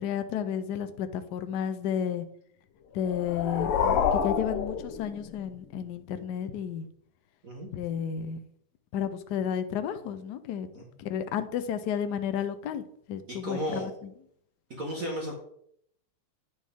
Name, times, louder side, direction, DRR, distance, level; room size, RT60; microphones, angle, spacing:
voice 1, 0.0-2.2 2.9-6.9 7.7-8.4 8.9-14.1, left 8 dB, 65° left, 11 dB, 1.1 m, -32 dB
sound 1, 3.0-5.6, left 7 dB, 85° left, 1.7 m, -28 dB
voice 2, 13.3-13.9 14.7-15.3, equal, 45° right, -2 dB, 1.5 m, -34 dB
9.4 x 6.3 x 3.5 m, 0.69 s
omnidirectional pair, 2.4 m